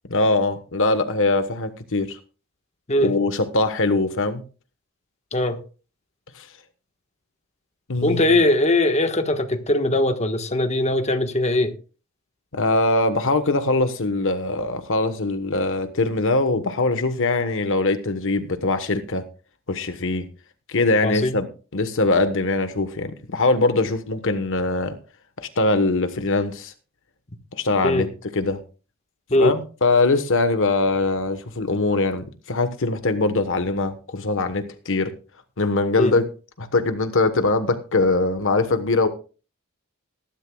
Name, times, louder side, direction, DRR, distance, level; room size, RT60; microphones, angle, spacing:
voice 1, 0.1-2.2 3.0-4.4 6.4-6.5 7.9-8.2 12.5-19.2 19.7-20.2 20.7-21.5 21.7-25.0 25.4-26.7 27.5-28.6 29.4-35.1 35.6-36.3 36.6-39.1, left 2 dB, 65° left, 1.2 m, -22 dB
voice 2, 8.0-11.8 21.0-21.4 27.8-28.1 29.3-29.5 36.0-36.1, left 1 dB, 30° left, 1.4 m, -20 dB
19.0 x 12.0 x 2.3 m
head